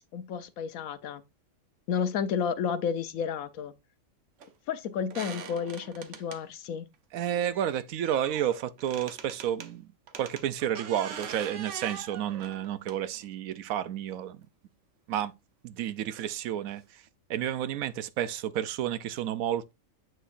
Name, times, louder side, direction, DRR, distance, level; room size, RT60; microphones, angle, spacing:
voice 1, 0.1-1.2 1.9-3.7 4.7-6.9, left 7 dB, 85° left, 1.2 m, -31 dB
sound 1, 4.4-4.5 5.1-6.4 7.5-9.7 10.1-13.3 14.4-14.5 16.1-16.3 16.7-16.8 17.1-17.2, right 6 dB, 65° right, 1.1 m, -43 dB
voice 2, 7.1-9.9 10.1-14.4 15.1-15.3 15.6-16.8 17.3-19.7, right 10 dB, 85° right, 1.1 m, -31 dB
7.9 x 6.1 x 2.5 m
omnidirectional pair, 1.4 m